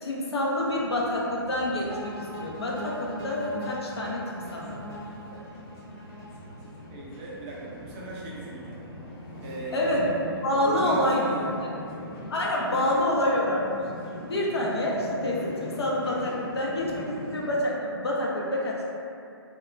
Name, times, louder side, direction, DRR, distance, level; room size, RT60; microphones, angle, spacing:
voice 1, 0.0-4.8 9.7-11.3 12.3-13.9 14.3-18.9, left 1 dB, 75° left, -4 dB, 0.6 m, -27 dB
sound 1, 0.6-17.6, equal, 30° left, 0.5 m, -42 dB
sound 2, 1.9-7.0, left 1 dB, 50° left, 0.9 m, -40 dB
voice 2, 6.9-8.8 9.4-10.0 10.6-11.5 12.7-13.1, equal, 25° right, -5 dB, 0.4 m, -37 dB
2.1 x 2.0 x 3.6 m, 2.7 s
figure-of-eight pair, 130°, 13 cm